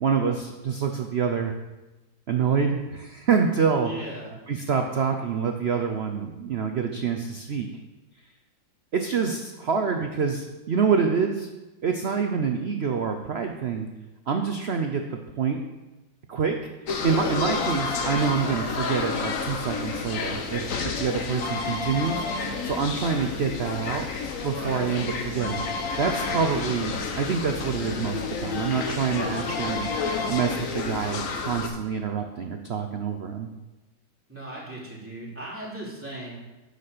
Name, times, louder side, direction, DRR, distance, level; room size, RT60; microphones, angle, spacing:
voice 1, 0.0-1.5 2.3-3.9 4.5-7.7 8.9-11.5 11.8-13.9 14.3-15.6 16.3-16.6 17.0-24.1 24.4-25.7 26.0-29.9 30.3-33.5, right 6 dB, 85° right, 5 dB, 0.5 m, -26 dB
voice 2, 3.8-4.3 24.5-24.8 34.3-36.4, right 1 dB, 5° right, -7 dB, 3.0 m, -37 dB
sound 1, 16.9-31.7, left 4 dB, 55° left, 1.1 m, -30 dB
9.8 x 5.1 x 6.7 m, 1.1 s
omnidirectional pair, 2.0 m